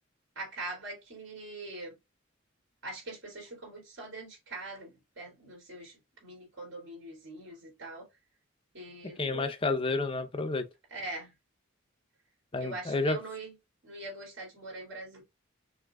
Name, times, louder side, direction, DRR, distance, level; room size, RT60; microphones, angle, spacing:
voice 1, 0.3-2.0 2.8-8.1 8.7-9.5 10.9-11.3 12.6-13.5 13.8-15.2, right 2 dB, 65° right, 2.9 m, -43 dB
voice 2, 9.2-10.7 12.5-13.2, left 3 dB, 25° left, 0.6 m, -30 dB
6.1 x 2.7 x 2.3 m
head